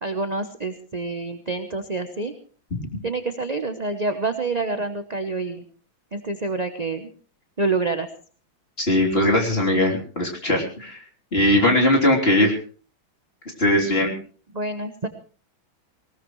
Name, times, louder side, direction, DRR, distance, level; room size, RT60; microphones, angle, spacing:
voice 1, 0.0-2.3 3.0-5.6 6.1-7.1 7.6-8.1 14.5-15.1, right 3 dB, 30° right, 8 dB, 0.7 m, -27 dB
voice 2, 8.8-11.0 11.3-12.6 13.6-14.2, left 1 dB, 30° left, 0 dB, 3.6 m, -20 dB
19.5 x 19.0 x 3.2 m, 0.40 s
omnidirectional pair, 2.2 m